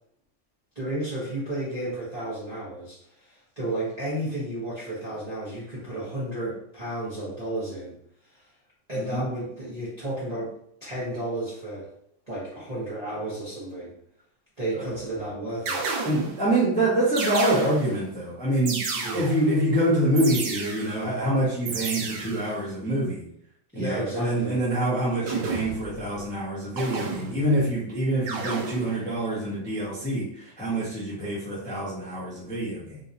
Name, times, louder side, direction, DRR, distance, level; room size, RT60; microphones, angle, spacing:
voice 1, 0.7-3.0 3.3-8.0 8.9-10.5 10.8-11.9 12.3-13.9 14.6-15.9 18.9-19.2 23.7-24.6, right 1 dB, 30° right, -9 dB, 0.8 m, -32 dB
sound 1, 14.9-15.2 15.7-16.5 17.2-18.1 18.7-19.6 20.2-21.1 21.7-22.5 25.3-26.0 26.8-27.6 28.3-29.0, right 4 dB, 70° right, 1.2 m, -32 dB
voice 2, 16.0-18.8 19.1-23.2 23.7-33.0, right 1 dB, 10° left, -8 dB, 0.5 m, -26 dB
3.7 x 2.8 x 2.7 m, 0.67 s
omnidirectional pair, 2.3 m